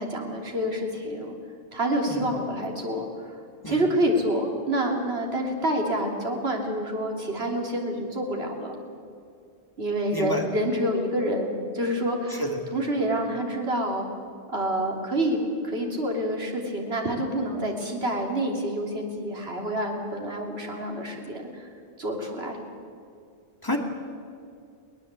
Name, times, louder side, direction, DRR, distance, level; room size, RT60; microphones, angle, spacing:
voice 1, 0.0-1.3 1.7-3.1 3.7-8.8 9.8-12.4 12.7-14.0 14.5-21.7 22.0-22.6, right 1 dB, 65° right, 0 dB, 3.4 m, -27 dB
voice 2, 10.1-10.4 12.4-12.6 23.6-23.8, left 1 dB, 20° left, 2 dB, 2.5 m, -29 dB
22.5 x 19.0 x 8.3 m, 2.4 s
omnidirectional pair, 1.2 m